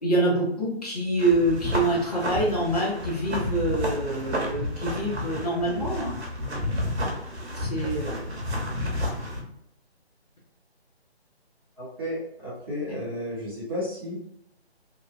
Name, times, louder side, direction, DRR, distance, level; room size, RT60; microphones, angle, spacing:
voice 1, 0.0-6.1 7.6-8.2, right 1 dB, 35° left, -4 dB, 0.6 m, -26 dB
sound 1, 1.2-9.4, left 1 dB, 75° right, 0.9 m, -31 dB
voice 2, 11.8-14.2, left 1 dB, 20° right, -8 dB, 0.7 m, -33 dB
2.7 x 2.1 x 2.4 m, 0.75 s
figure-of-eight pair, 160°, 33 cm